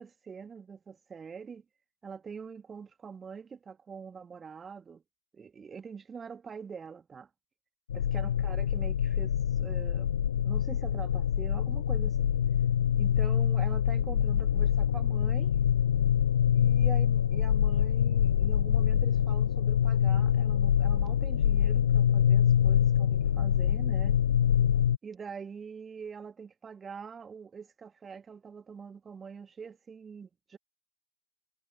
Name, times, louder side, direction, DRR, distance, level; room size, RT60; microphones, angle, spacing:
voice 1, 0.0-1.6 2.0-5.0 5.3-7.3 8.1-10.1 10.4-12.3 13.0-15.5 16.5-24.2 25.0-30.6, right 6 dB, 20° right, 1.8 m, -44 dB
sound 1, 7.9-25.0, left 9 dB, 65° left, 0.3 m, -25 dB
figure-of-eight pair, 90°, 0 cm